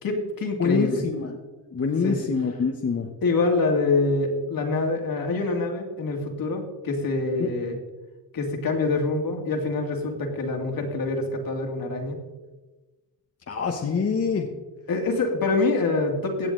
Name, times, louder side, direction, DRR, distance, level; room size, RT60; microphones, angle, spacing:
voice 1, 0.0-1.1 2.0-2.2 3.2-7.8 8.3-12.2 14.9-16.5, left 3 dB, 55° left, 3 dB, 2.5 m, -25 dB
voice 2, 0.6-1.4 1.7-3.1 7.4-7.5 13.5-14.5, left 5 dB, 35° left, 3 dB, 1.2 m, -25 dB
16.5 x 7.1 x 3.9 m, 1.2 s
supercardioid pair, 70°, 41 cm